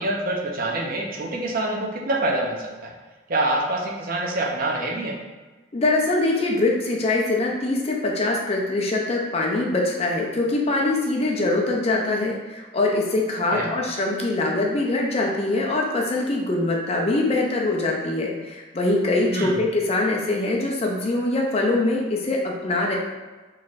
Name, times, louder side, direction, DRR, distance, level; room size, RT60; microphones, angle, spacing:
voice 1, 0.0-2.9 3.3-5.1 13.5-13.7 19.3-19.6, right 2 dB, 45° right, -1 dB, 0.5 m, -26 dB
voice 2, 5.7-23.0, left 2 dB, 30° left, -1 dB, 0.4 m, -23 dB
4.1 x 3.1 x 2.4 m, 1.3 s
head